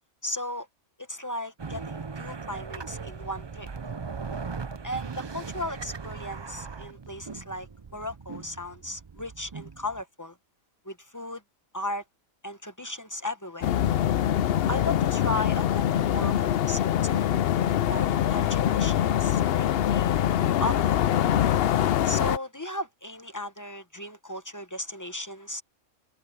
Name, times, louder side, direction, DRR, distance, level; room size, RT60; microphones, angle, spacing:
voice 1, 0.2-0.7 1.1-3.7 4.8-10.4 10.8-11.4 11.7-12.0 12.4-13.7 14.7-17.3 17.8-20.2 20.6-21.0 22.0-25.6, left 1 dB, 15° left, 0.9 m, -36 dB
sound 1, 1.6-10.0, right 5 dB, 45° right, 0.3 m, -39 dB
sound 2, 13.6-22.4, left 10 dB, 60° left, 0.6 m, -24 dB
omnidirectional pair, 1.4 m